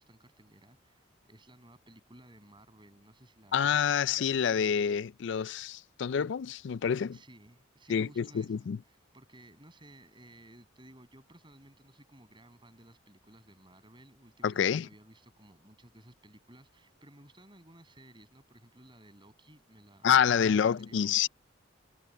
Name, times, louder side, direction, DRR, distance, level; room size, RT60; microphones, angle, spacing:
voice 1, 0.0-4.3 7.1-21.3, right 1 dB, 25° right, 7.5 m, -57 dB
voice 2, 3.5-7.2 7.9-8.8 14.4-14.9 20.0-21.3, left 7 dB, 60° left, 0.3 m, -27 dB
head